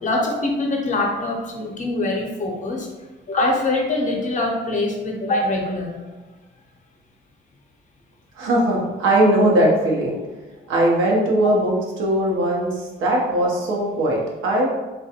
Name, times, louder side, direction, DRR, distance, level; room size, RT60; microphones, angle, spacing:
voice 1, 0.0-2.9 3.3-6.0 11.4-11.6, left 2 dB, 40° left, 0 dB, 0.6 m, -23 dB
voice 2, 8.4-10.2 10.7-11.7 12.0-12.7 13.0-14.7, right 1 dB, 85° right, -2 dB, 0.7 m, -19 dB
2.5 x 2.2 x 2.8 m, 1.2 s
cardioid pair, 90°, 20 cm